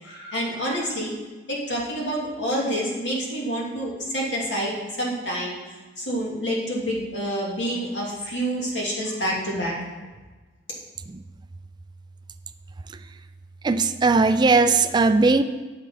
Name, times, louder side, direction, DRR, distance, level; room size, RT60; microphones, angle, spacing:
voice 1, 0.0-1.2 1.5-9.7, equal, 70° left, -4 dB, 2.7 m, -28 dB
voice 2, 13.6-15.4, right 3 dB, 25° right, 10 dB, 0.3 m, -18 dB
8.8 x 6.5 x 5.7 m, 1.2 s
head